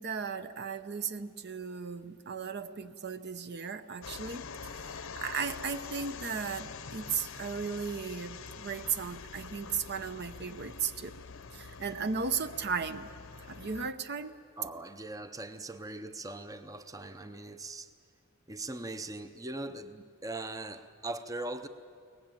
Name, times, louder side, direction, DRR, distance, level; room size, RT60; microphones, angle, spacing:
voice 1, 0.0-11.1 11.5-13.1 13.5-14.3, right 5 dB, 50° right, 11 dB, 0.7 m, -36 dB
sound 1, 4.0-13.9, left 5 dB, 65° left, 0.7 m, -45 dB
sound 2, 5.9-13.9, equal, 70° right, 3.3 m, -61 dB
voice 2, 14.6-17.9 18.5-21.7, right 2 dB, 15° right, 10 dB, 0.7 m, -40 dB
22.5 x 19.0 x 9.0 m, 2.3 s
head